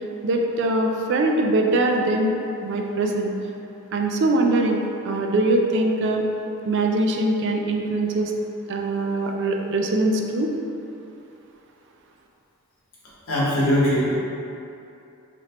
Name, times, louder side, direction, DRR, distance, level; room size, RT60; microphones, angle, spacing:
voice 1, 0.2-2.4 2.6-3.3 3.9-6.2 6.6-8.3 8.7-10.5, right 2 dB, 55° right, 2 dB, 0.3 m, -22 dB
voice 2, 13.3-14.1, equal, 70° left, -7 dB, 1.0 m, -20 dB
3.2 x 2.5 x 4.1 m, 2.7 s
head